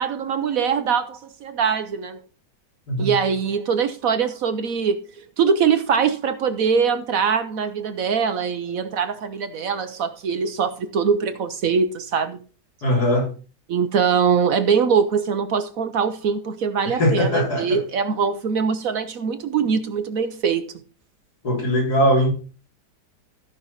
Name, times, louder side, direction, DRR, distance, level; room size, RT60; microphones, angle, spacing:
voice 1, 0.0-2.2 3.0-5.0 5.4-12.4 13.7-20.6, right 6 dB, 60° right, 1.1 m, -22 dB
voice 2, 12.8-13.3 16.9-17.8 21.4-22.3, equal, 65° left, 4.5 m, -20 dB
14.5 x 5.6 x 4.0 m
omnidirectional pair, 1.8 m